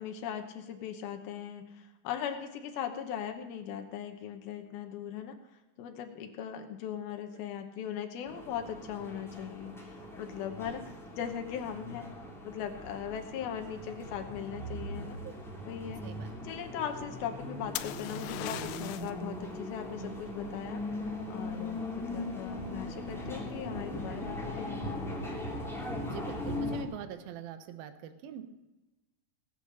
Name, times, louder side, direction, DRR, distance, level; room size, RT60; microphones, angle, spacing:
voice 1, 0.0-5.4 5.8-12.1 12.4-15.2 15.7-16.0 16.4-25.2, left 8 dB, 70° left, 5 dB, 2.6 m, -39 dB
sound 1, 8.3-26.8, left 1 dB, ahead, 1.9 m, -40 dB
voice 2, 16.0-16.3 26.0-28.4, right 9 dB, 70° right, 9 dB, 2.4 m, -43 dB
sound 2, 17.8-19.2 22.9-23.3, left 15 dB, 85° left, 2.9 m, -39 dB
18.5 x 8.5 x 6.3 m, 1.1 s
omnidirectional pair, 5.1 m